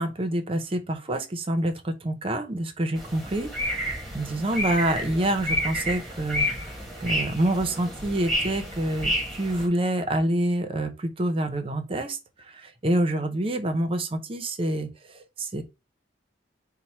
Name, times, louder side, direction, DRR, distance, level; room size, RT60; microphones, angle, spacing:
voice 1, 0.0-12.2 12.5-14.9 15.4-15.6, right 1 dB, 30° right, 0.6 m, -27 dB
sound 1, 3.0-9.7, equal, ahead, 1.1 m, -30 dB
4.4 x 2.1 x 4.2 m
head